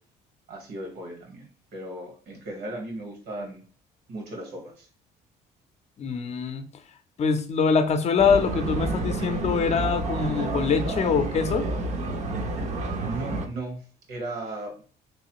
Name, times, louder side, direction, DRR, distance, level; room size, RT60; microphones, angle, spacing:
voice 1, 0.5-3.6 4.1-4.9 13.0-14.8, right 2 dB, 70° right, 2 dB, 1.5 m, -36 dB
voice 2, 6.0-6.6 7.2-11.7, left 5 dB, 40° left, 8 dB, 0.6 m, -24 dB
sound 1, 8.2-13.5, right 2 dB, 45° right, 0.7 m, -29 dB
3.4 x 3.1 x 2.9 m, 0.41 s
cardioid pair, 110°, 17 cm